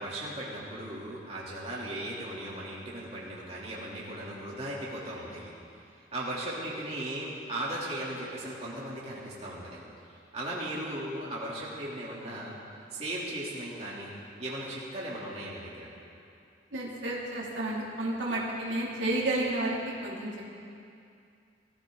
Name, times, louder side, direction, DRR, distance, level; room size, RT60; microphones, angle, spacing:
voice 1, 0.0-5.5 6.1-9.8 10.3-12.6 12.9-14.1 14.4-15.9, right 1 dB, 35° right, -6 dB, 3.1 m, -37 dB
voice 2, 16.7-20.4, right 1 dB, 85° right, -5 dB, 2.7 m, -31 dB
21.5 x 15.0 x 3.9 m, 2.5 s
head